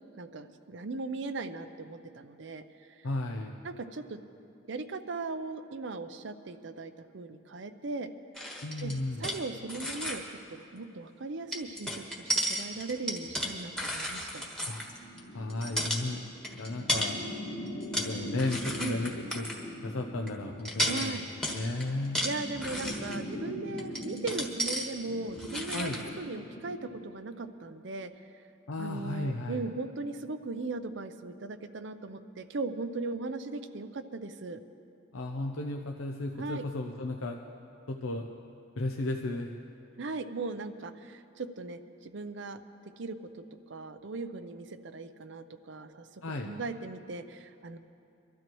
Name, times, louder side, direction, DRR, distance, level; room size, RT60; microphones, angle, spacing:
voice 1, 0.1-3.1 3.6-4.2 4.7-8.1 8.8-10.2 10.5-14.5 18.8-19.0 20.8-21.3 22.2-28.1 28.8-34.6 36.4-36.6 40.0-43.4 43.7-47.8, right 3 dB, 60° right, 10 dB, 0.6 m, -38 dB
voice 2, 3.0-3.5 8.6-9.3 14.7-14.9 15.3-16.2 16.6-17.2 18.0-19.5 19.8-21.2 21.5-22.2 25.7-26.0 28.7-29.6 35.1-37.4 37.9-38.3 38.8-39.5 46.2-46.5, left 2 dB, 85° left, 2 dB, 0.7 m, -34 dB
sound 1, 8.3-9.4 9.7-10.2 11.5-15.2 15.5-16.0 16.4-17.1 17.7-18.1 18.4-19.6 20.3-20.4 20.6-23.2 23.8-24.9 25.3-26.1, equal, 5° left, 1.3 m, -33 dB
sound 2, 14.7-27.1, equal, 50° left, 2.1 m, -42 dB
24.5 x 13.0 x 3.1 m, 2.7 s
head